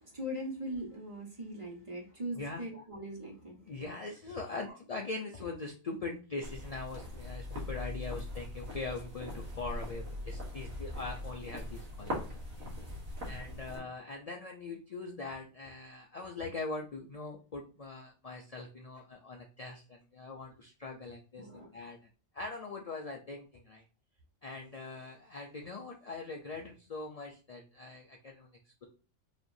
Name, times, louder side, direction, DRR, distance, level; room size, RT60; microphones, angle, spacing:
voice 1, 0.1-3.6 21.4-21.7, equal, 25° right, -2 dB, 1.3 m, -40 dB
voice 2, 3.6-12.7 13.3-22.0 22.3-23.8 24.4-28.9, left 3 dB, 65° left, 1 dB, 0.3 m, -42 dB
sound 1, 6.4-13.8, left 1 dB, 75° right, 1.7 m, -41 dB
5.0 x 2.9 x 2.6 m, 0.36 s
omnidirectional pair, 1.4 m